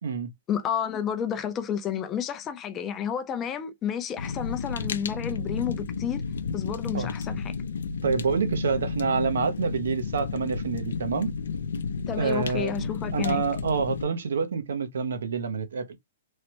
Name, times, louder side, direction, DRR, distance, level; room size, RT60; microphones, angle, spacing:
voice 1, 0.5-6.2 6.5-7.5 12.1-13.4, left 8 dB, 20° left, 0.4 m, -31 dB
Fire, 4.2-14.0, left 5 dB, 85° left, 0.5 m, -32 dB
voice 2, 8.0-11.3 12.1-15.9, right 5 dB, 80° right, 0.6 m, -27 dB
3.1 x 2.1 x 2.9 m
hypercardioid pair, 160°, 0 cm